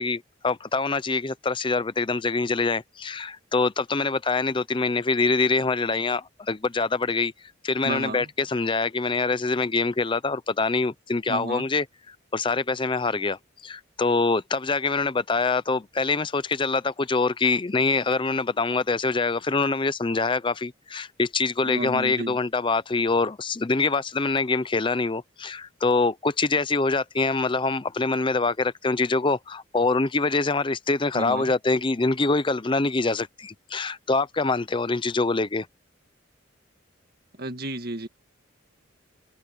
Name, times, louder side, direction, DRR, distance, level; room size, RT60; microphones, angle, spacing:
voice 1, 0.0-7.3 7.6-35.7, left 3 dB, 25° left, 0.6 m, -25 dB
voice 2, 7.8-8.3 11.3-11.7 21.6-22.4 31.1-31.5 37.4-38.1, right 1 dB, 50° right, 2.0 m, -32 dB
head